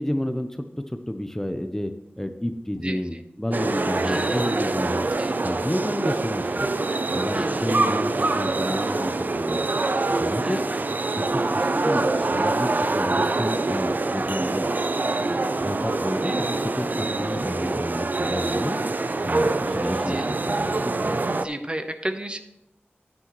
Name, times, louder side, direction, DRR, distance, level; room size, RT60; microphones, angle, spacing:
voice 1, 0.0-5.1 5.4-6.7 7.1-9.6 10.2-10.7 11.3-14.7 15.6-18.8 19.2-20.2 20.6-20.7 21.0-21.2, left 1 dB, 10° left, 8 dB, 0.6 m, -30 dB
sound 1, 3.5-21.5, right 2 dB, 45° right, 0.5 m, -25 dB
voice 2, 4.0-4.7 5.2-5.3 7.3-7.8 10.4-10.8 16.2-16.4 20.0-20.2 21.4-22.4, right 1 dB, 25° right, 8 dB, 0.8 m, -33 dB
9.9 x 9.8 x 3.1 m, 0.87 s
wide cardioid pair, 65°, 4 cm